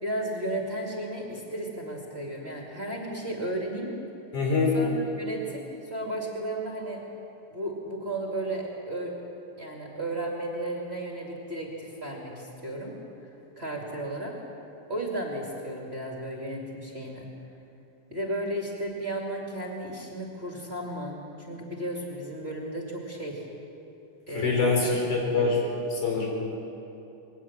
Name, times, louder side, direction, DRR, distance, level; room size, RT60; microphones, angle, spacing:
voice 1, 0.0-3.9 4.7-7.0 7.5-9.1 9.6-12.9 13.2-13.3 13.6-14.3 14.9-17.3 18.1-23.4 24.3-24.9 25.3-25.5, right 1 dB, 20° right, -2 dB, 2.3 m, -34 dB
voice 2, 4.3-4.7 24.4-25.6 26.0-26.3, left 4 dB, 80° left, -2 dB, 6.0 m, -24 dB
21.5 x 18.5 x 7.4 m, 3.0 s
omnidirectional pair, 3.4 m